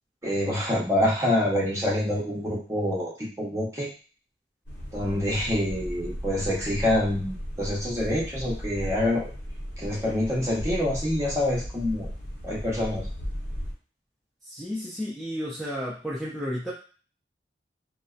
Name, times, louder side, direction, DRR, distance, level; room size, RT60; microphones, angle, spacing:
voice 1, 0.2-3.9 4.9-9.3 9.8-12.1 12.4-13.1, left 1 dB, 15° right, -6 dB, 0.8 m, -26 dB
sound 1, 4.7-13.7, equal, 75° left, 0.9 m, -36 dB
voice 2, 14.4-16.7, equal, ahead, -7 dB, 0.4 m, -32 dB
2.6 x 2.1 x 2.4 m, 0.38 s
head